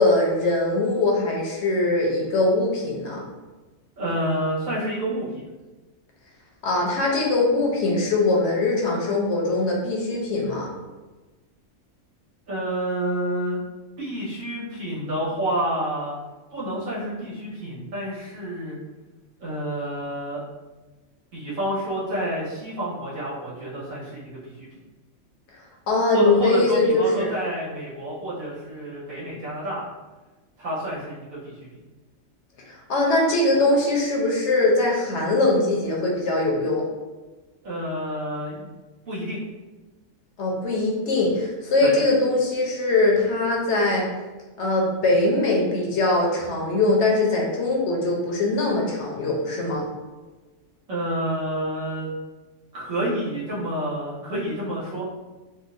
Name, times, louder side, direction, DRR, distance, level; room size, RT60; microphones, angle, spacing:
voice 1, 0.0-3.2 6.6-10.7 25.9-27.3 32.7-36.8 40.4-44.1 44.6-49.8, left 2 dB, 65° left, -2 dB, 0.9 m, -22 dB
voice 2, 4.0-5.4 12.5-13.6 14.0-16.2 16.5-18.8 19.4-20.4 21.3-24.7 26.1-29.8 30.6-31.7 37.6-38.6 39.1-39.4 41.8-41.9 50.9-52.1 52.7-55.0, right 1 dB, 85° right, -8 dB, 1.6 m, -29 dB
3.8 x 2.3 x 2.5 m, 1.2 s
omnidirectional pair, 1.4 m